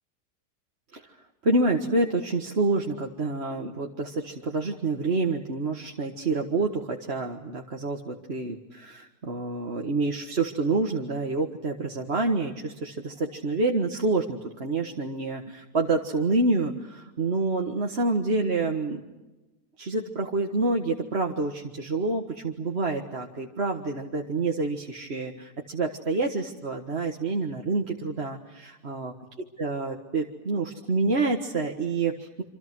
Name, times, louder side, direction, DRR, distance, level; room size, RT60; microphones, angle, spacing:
voice 1, 1.4-19.0 19.8-29.1 29.6-32.4, right 3 dB, 40° right, 1 dB, 1.8 m, -27 dB
27.5 x 26.5 x 6.2 m, 1.1 s
omnidirectional pair, 1.7 m